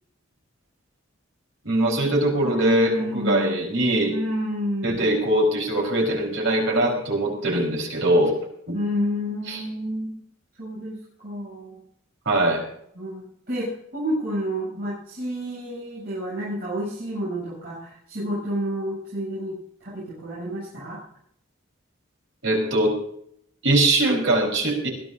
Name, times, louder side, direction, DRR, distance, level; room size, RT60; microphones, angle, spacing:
voice 1, 1.6-4.1 4.8-8.3 8.7-8.8 9.5-9.6 12.3-12.6 22.4-22.9 23.6-24.9, right 1 dB, 70° right, 1 dB, 4.4 m, -22 dB
voice 2, 2.4-3.6 4.1-5.0 8.7-10.1 10.6-11.0 11.2-11.8 13.0-19.6 19.8-21.0, equal, 50° right, -8 dB, 7.4 m, -29 dB
21.0 x 15.5 x 2.7 m, 0.68 s
head